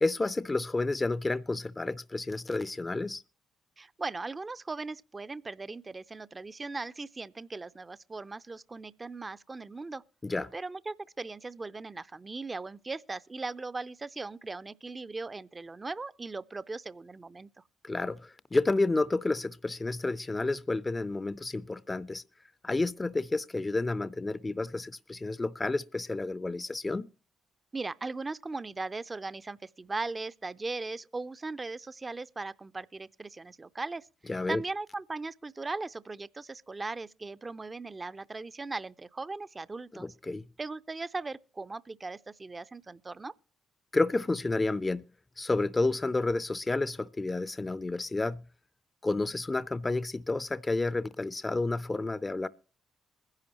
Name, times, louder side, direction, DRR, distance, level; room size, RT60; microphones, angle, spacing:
voice 1, 0.0-3.2 10.2-10.5 17.8-22.2 22.6-27.1 34.3-34.6 40.0-40.4 43.9-45.0 45.4-48.4 49.0-52.5, left 2 dB, 25° left, 0.5 m, -30 dB
voice 2, 3.8-10.0 10.5-17.5 27.7-34.1 34.5-40.1 40.6-43.3, right 3 dB, 30° right, 0.5 m, -38 dB
21.5 x 10.5 x 2.9 m
supercardioid pair, 55°, 0 cm